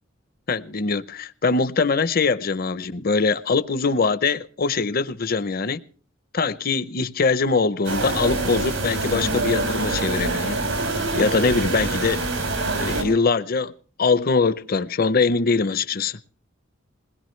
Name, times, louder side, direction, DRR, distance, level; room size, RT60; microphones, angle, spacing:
voice 1, 0.5-5.8 6.3-10.6 11.1-12.2 12.7-13.7 14.0-16.2, left 4 dB, 50° left, 0.7 m, -22 dB
sound 1, 7.8-13.0, right 2 dB, 90° right, 5.1 m, -25 dB
21.5 x 20.0 x 3.2 m
head